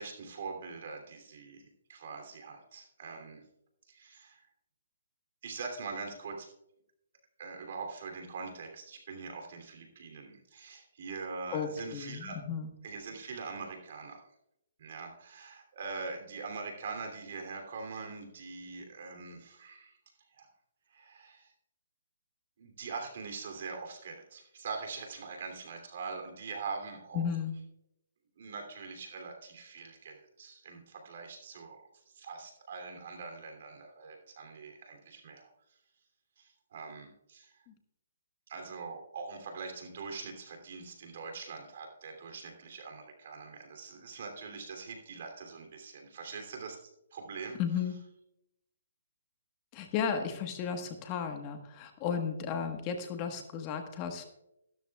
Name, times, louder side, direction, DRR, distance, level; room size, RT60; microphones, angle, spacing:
voice 1, 0.0-3.4 3.9-4.5 5.4-6.5 7.4-12.4 12.8-14.2 14.8-20.0 20.4-20.5 20.9-21.5 22.6-27.2 28.4-35.5 36.4-37.6 38.5-47.6, right 4 dB, 55° right, 4 dB, 3.0 m, -43 dB
voice 2, 11.5-12.7 27.1-27.6 47.6-47.9 49.7-54.2, left 7 dB, 30° left, 5 dB, 1.4 m, -34 dB
14.5 x 12.5 x 2.4 m, 0.81 s
hypercardioid pair, 150°, 0 cm